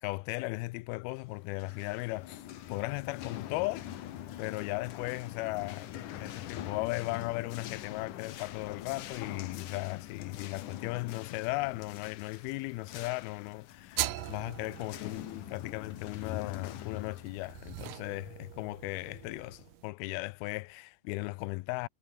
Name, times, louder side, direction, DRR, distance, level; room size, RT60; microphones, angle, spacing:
voice 1, 0.0-3.9 4.4-5.9 6.2-21.9, left 22 dB, 90° left, 2.5 m, -37 dB
sound 1, 1.4-18.8, left 12 dB, 65° left, 2.7 m, -44 dB
sound 2, 14.0-19.9, right 14 dB, 75° right, 2.6 m, -41 dB
omnidirectional pair, 4.3 m